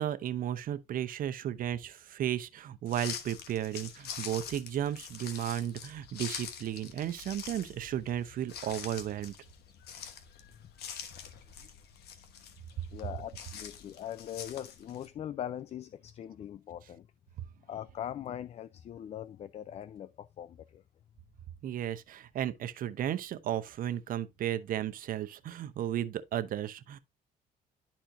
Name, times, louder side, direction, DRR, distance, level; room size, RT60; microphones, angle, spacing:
voice 1, 0.0-9.4 12.8-12.9 17.4-17.5 21.6-27.0, right 11 dB, 55° right, 0.7 m, -34 dB
sound 1, 2.9-15.1, left 8 dB, 70° left, 1.1 m, -45 dB
voice 2, 12.9-17.1 17.7-20.8, left 10 dB, 40° left, 0.3 m, -41 dB
11.5 x 4.3 x 2.5 m
cardioid pair, 110°, 17 cm